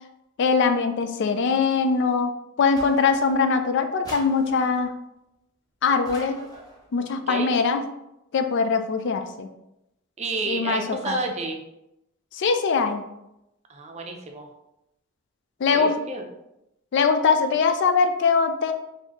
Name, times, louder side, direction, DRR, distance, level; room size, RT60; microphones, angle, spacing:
voice 1, 0.4-2.3 2.6-4.9 5.8-6.4 6.9-7.8 8.3-9.5 10.5-11.2 12.3-13.0 15.6-16.0 16.9-18.7, left 5 dB, 60° left, 7 dB, 0.4 m, -22 dB
sound 1, 2.8-3.5 4.0-4.9 6.0-6.9, right 1 dB, 20° left, 0.8 m, -43 dB
voice 2, 10.2-11.6 13.7-14.5 15.7-16.2, right 3 dB, 30° right, 3 dB, 0.5 m, -30 dB
4.0 x 2.7 x 2.9 m, 0.87 s
head